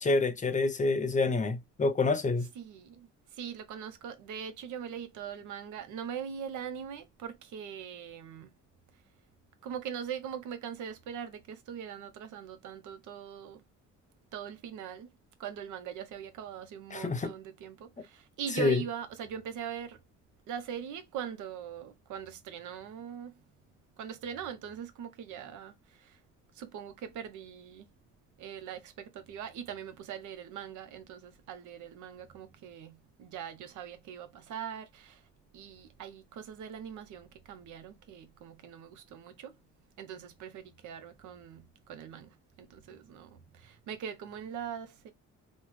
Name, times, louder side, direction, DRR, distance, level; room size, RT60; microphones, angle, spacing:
voice 1, 0.0-2.4 16.9-17.3 18.6-18.8, left 3 dB, 25° left, 0.7 m, -27 dB
voice 2, 2.5-8.5 9.6-13.6 14.3-15.1 15.4-20.0 20.5-23.3 24.0-26.2 26.5-27.9 28.4-35.2 35.5-39.6 40.0-45.1, right 8 dB, 80° right, 0.7 m, -41 dB
3.2 x 2.0 x 3.2 m
cardioid pair, 90°, 30 cm